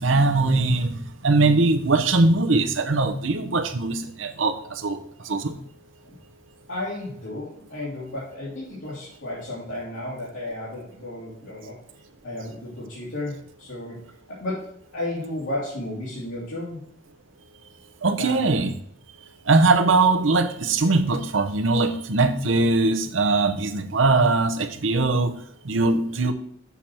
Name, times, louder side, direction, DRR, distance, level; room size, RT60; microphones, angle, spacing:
voice 1, 0.0-5.0 5.2-5.6 18.0-18.7 19.5-25.3 25.6-26.3, right 3 dB, 80° right, 0.8 m, -21 dB
voice 2, 6.7-11.8 12.2-14.0 14.3-16.8 18.2-18.4, left 1 dB, 85° left, 2.6 m, -33 dB
7.0 x 4.4 x 6.1 m
head